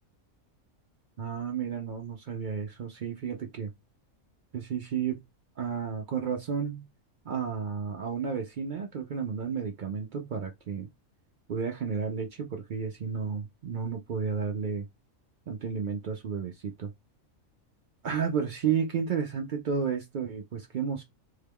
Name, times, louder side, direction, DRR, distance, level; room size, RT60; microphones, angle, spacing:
voice 1, 1.2-3.7 4.5-5.2 5.6-6.9 7.3-10.9 11.5-14.9 15.5-16.9 18.0-21.0, right 6 dB, 80° right, 0.4 m, -32 dB
3.7 x 2.2 x 3.4 m
omnidirectional pair, 1.5 m